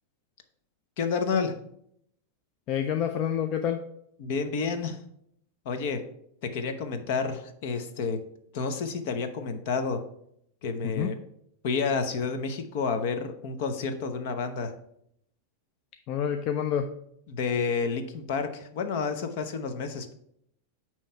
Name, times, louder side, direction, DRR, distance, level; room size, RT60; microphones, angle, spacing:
voice 1, 1.0-1.6 4.2-5.0 5.6-6.0 6.4-8.2 8.5-10.0 10.6-11.2 11.6-14.7 17.3-20.1, left 5 dB, 55° left, 8 dB, 0.8 m, -30 dB
voice 2, 2.7-3.8 10.8-11.1 16.1-16.9, left 9 dB, 35° left, 6 dB, 0.4 m, -28 dB
8.8 x 3.1 x 5.6 m, 0.73 s
supercardioid pair, 155°, 0 cm